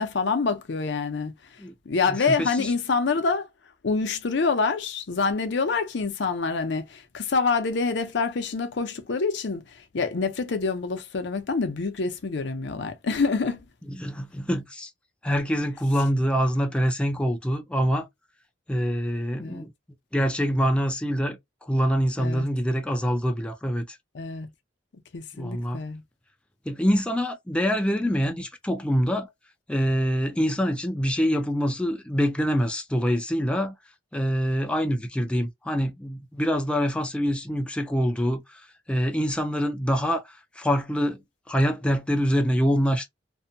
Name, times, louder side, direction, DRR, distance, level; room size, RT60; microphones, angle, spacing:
voice 1, 0.0-1.3 1.9-3.5 3.8-9.6 9.9-13.6 19.4-19.7 22.2-22.5 24.1-24.5 25.1-26.0, left 4 dB, 70° left, 0.6 m, -26 dB
voice 2, 2.1-2.7 13.9-14.9 15.2-18.1 18.7-19.7 20.1-24.0 25.3-25.8 26.7-29.3 29.7-33.7 34.1-38.6 38.9-43.1, equal, 5° left, 0.3 m, -25 dB
2.6 x 2.2 x 2.5 m
head